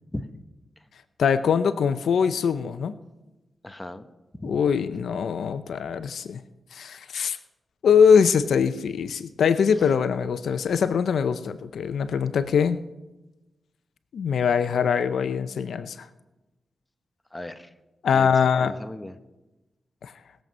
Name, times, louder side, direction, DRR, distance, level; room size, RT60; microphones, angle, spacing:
voice 1, 1.2-3.0 4.4-6.4 6.7-7.4 7.8-12.8 14.1-16.0 18.0-18.7 20.0-20.1, left 6 dB, 85° left, 12 dB, 0.6 m, -22 dB
voice 2, 3.6-4.0 4.4-4.6 17.3-17.7 18.1-19.1, left 1 dB, 10° left, 9 dB, 0.9 m, -36 dB
20.0 x 7.6 x 5.4 m, 1.0 s
wide cardioid pair, 95°, 0 cm